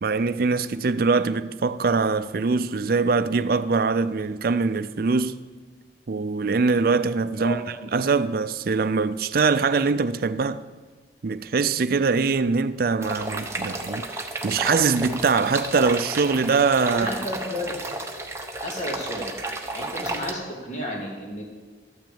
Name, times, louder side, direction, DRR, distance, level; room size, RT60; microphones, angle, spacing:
voice 1, 0.0-5.4 6.1-7.6 7.9-10.6 11.2-17.1, right 4 dB, 55° right, 0.5 m, -23 dB
sound 1, 13.0-20.3, right 2 dB, 15° right, 0.9 m, -32 dB
voice 2, 16.9-17.7 18.6-19.3 19.7-21.4, equal, 40° left, 2.8 m, -32 dB
12.5 x 6.3 x 8.6 m
head